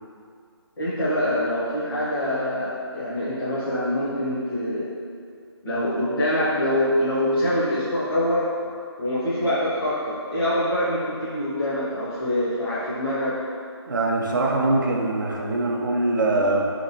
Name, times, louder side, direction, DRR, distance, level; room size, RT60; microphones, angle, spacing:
voice 1, 0.8-4.8 5.6-8.5 9.0-13.3, left 1 dB, 55° left, -10 dB, 0.8 m, -24 dB
voice 2, 13.9-16.7, right 2 dB, 45° right, -1 dB, 0.4 m, -23 dB
3.7 x 2.9 x 2.6 m, 2.4 s
figure-of-eight pair, 175°, 14 cm